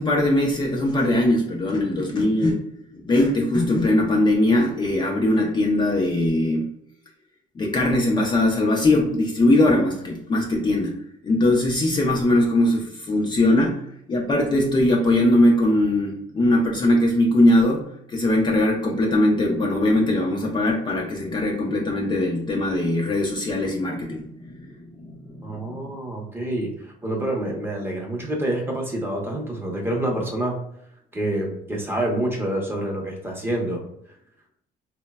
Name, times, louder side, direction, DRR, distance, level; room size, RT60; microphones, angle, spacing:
voice 1, 0.0-2.6 2.9-6.7 7.6-11.0 11.2-13.8 14.1-24.7 25.0-25.8, left 1 dB, 25° left, -1 dB, 0.4 m, -21 dB
voice 2, 25.4-30.5 31.1-33.8, right 1 dB, 15° right, -1 dB, 0.7 m, -27 dB
3.1 x 2.1 x 2.2 m, 0.75 s
cardioid pair, 110°, 17 cm